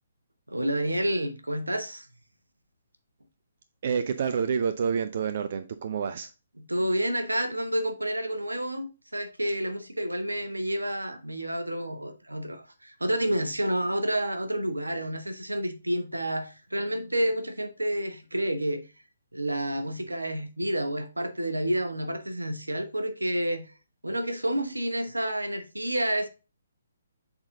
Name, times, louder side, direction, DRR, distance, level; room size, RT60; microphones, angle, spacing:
voice 1, 0.5-2.1 6.7-18.8 19.3-23.7 24.0-26.3, right 1 dB, 80° right, 1.0 m, -29 dB
voice 2, 3.8-6.3, right 6 dB, 45° right, 0.4 m, -28 dB
7.1 x 4.0 x 3.6 m
figure-of-eight pair, 135°, 0 cm